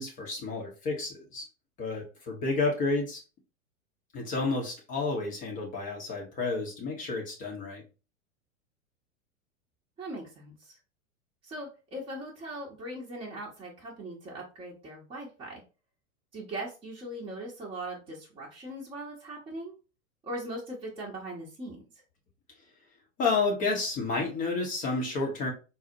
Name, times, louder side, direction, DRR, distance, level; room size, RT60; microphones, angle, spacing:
voice 1, 0.0-1.5 1.8-3.2 4.1-7.8 23.2-25.5, left 3 dB, 20° left, 0 dB, 0.6 m, -30 dB
voice 2, 10.0-10.8 11.4-15.6 16.3-19.7 20.2-21.8, right 1 dB, 15° right, -4 dB, 0.7 m, -40 dB
4.1 x 2.0 x 2.6 m, 0.32 s
figure-of-eight pair, 95°, 40 cm